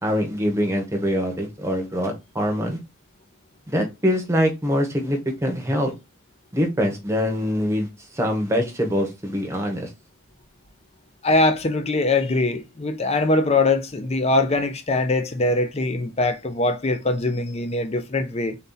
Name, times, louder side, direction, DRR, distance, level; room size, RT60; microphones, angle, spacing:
voice 1, 0.0-2.8 3.7-5.9 6.5-9.9, equal, 15° right, 1.0 m, -24 dB
voice 2, 11.2-18.6, left 2 dB, 30° left, 0.6 m, -22 dB
3.9 x 2.8 x 3.8 m
head